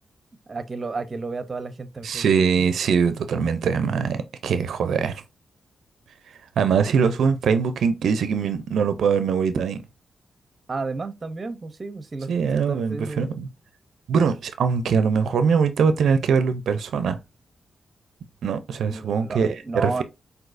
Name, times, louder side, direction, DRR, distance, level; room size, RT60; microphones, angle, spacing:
voice 1, 0.5-2.3 10.7-12.3 12.7-13.4 18.9-20.0, right 3 dB, 35° right, 0.6 m, -32 dB
voice 2, 2.0-5.2 6.6-9.8 12.3-13.5 14.1-17.2 18.4-20.0, right 6 dB, 85° right, 0.4 m, -22 dB
6.0 x 2.7 x 2.5 m
cardioid pair, 95°, 0 cm